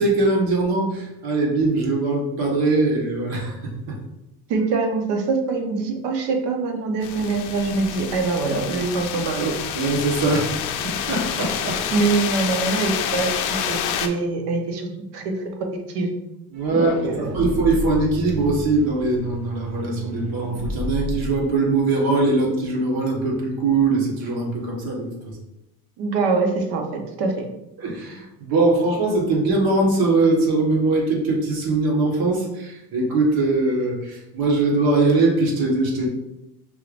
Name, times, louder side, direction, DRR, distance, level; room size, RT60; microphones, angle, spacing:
voice 1, 0.0-3.6 3.9-4.0 9.7-10.5 10.8-12.0 16.5-25.1 27.8-36.1, right 2 dB, 60° right, -2 dB, 1.5 m, -21 dB
voice 2, 4.5-9.5 11.9-13.3 13.7-14.9 15.1-15.2 15.9-16.1 16.7-17.4 26.0-27.4, right 4 dB, 80° right, 3 dB, 1.0 m, -24 dB
sound 1, 7.0-14.1, left 8 dB, 50° left, 0.5 m, -28 dB
sound 2, 16.5-21.6, equal, 40° right, 0.8 m, -32 dB
5.5 x 3.3 x 2.5 m, 0.90 s
cardioid pair, 130°, 39 cm